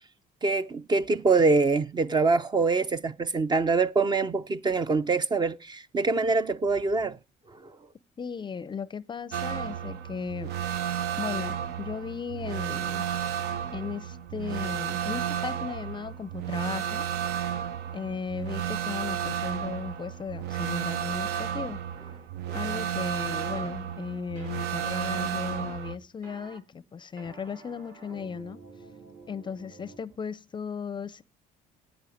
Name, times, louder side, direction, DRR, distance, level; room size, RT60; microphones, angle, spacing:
voice 1, 0.4-7.2 7.6-7.7, right 4 dB, 25° right, 0.5 m, -24 dB
voice 2, 8.2-10.5 11.2-13.0 13.7-17.1 17.9-21.8 22.5-28.6 29.3-31.2, left 6 dB, 25° left, 0.5 m, -36 dB
sound 1, 9.3-26.0, right 9 dB, 80° right, 0.7 m, -32 dB
sound 2, 22.5-22.8 24.3-24.6 26.2-26.6 27.2-30.0, right 4 dB, 50° right, 3.3 m, -49 dB
8.9 x 8.6 x 9.2 m
cardioid pair, 110°, 17 cm